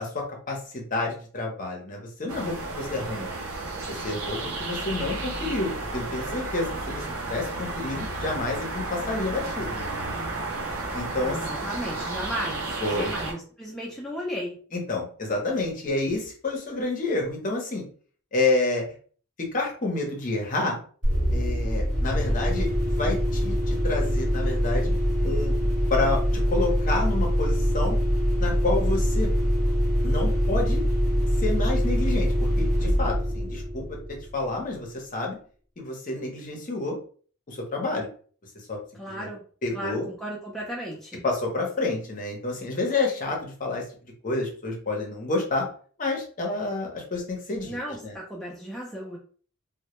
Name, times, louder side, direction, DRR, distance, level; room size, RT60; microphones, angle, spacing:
voice 1, 0.0-3.3 3.9-9.9 10.9-11.4 12.8-13.1 14.7-17.8 18.3-18.9 19.4-20.8 21.3-24.9 25.2-25.5 25.9-28.0 28.4-29.3 30.0-30.8 31.4-33.8 34.3-35.4 35.8-37.0 37.5-38.1 38.7-38.8 39.2-39.3 39.6-40.1 41.2-43.8 44.2-45.7 46.0-47.8 48.0-48.1, left 2 dB, 40° left, 0 dB, 0.6 m, -29 dB
sound 1, 2.3-13.3, right 2 dB, 75° right, 0.6 m, -32 dB
voice 2, 11.3-14.6 38.9-39.4 39.7-41.2 47.6-49.2, equal, ahead, -4 dB, 0.4 m, -35 dB
sound 2, 21.0-34.5, equal, 35° right, 0.9 m, -24 dB
2.1 x 2.0 x 2.9 m, 0.44 s
head